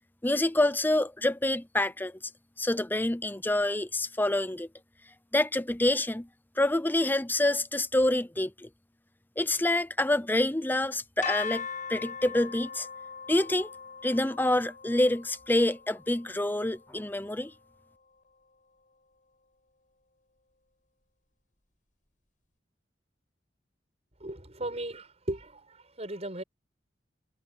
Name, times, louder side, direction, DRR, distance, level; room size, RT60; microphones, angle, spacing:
voice 1, 0.2-2.2 2.6-4.7 5.3-6.3 6.6-8.7 9.4-12.9 13.3-13.7 14.0-17.5, left 1 dB, 10° left, 0.7 m, -27 dB
sound 1, 11.2-17.1, left 6 dB, 50° left, 6.0 m, -40 dB
voice 2, 24.2-26.4, right 1 dB, 40° right, 7.1 m, -37 dB
head